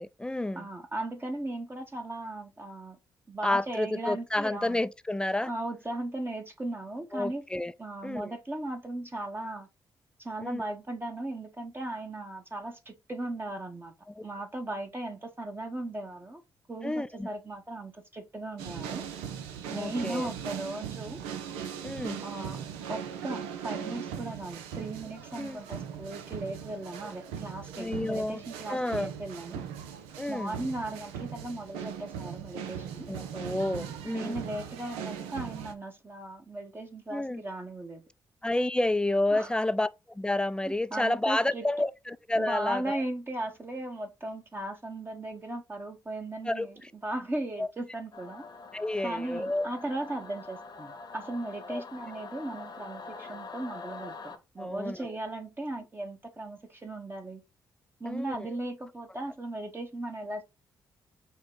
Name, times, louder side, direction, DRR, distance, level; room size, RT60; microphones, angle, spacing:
voice 1, 0.0-0.7 3.4-5.5 7.1-7.7 8.0-8.3 10.4-10.6 14.2-14.3 16.8-17.3 19.7-20.3 21.8-22.2 25.4-25.6 27.8-28.4 28.7-29.1 30.2-30.6 33.1-34.3 37.1-37.4 38.4-43.0 46.5-46.7 47.6-47.7 48.7-49.7 51.7-51.8 54.6-55.2 58.1-58.5, left 1 dB, 10° left, 0.4 m, -30 dB
voice 2, 0.5-3.0 3.3-4.8 5.4-7.4 7.8-9.7 10.2-13.9 14.2-16.4 16.7-19.0 19.7-21.2 22.2-22.6 22.9-29.6 30.3-33.1 34.1-38.0 39.3-39.5 40.9-41.7 42.3-48.4 49.0-57.4 58.0-60.4, right 2 dB, 25° right, 1.0 m, -37 dB
sound 1, 18.6-35.7, right 8 dB, 85° right, 0.5 m, -39 dB
Singing / Musical instrument, 48.1-54.4, left 4 dB, 50° left, 0.9 m, -45 dB
6.2 x 2.2 x 3.8 m
hypercardioid pair, 50°, 9 cm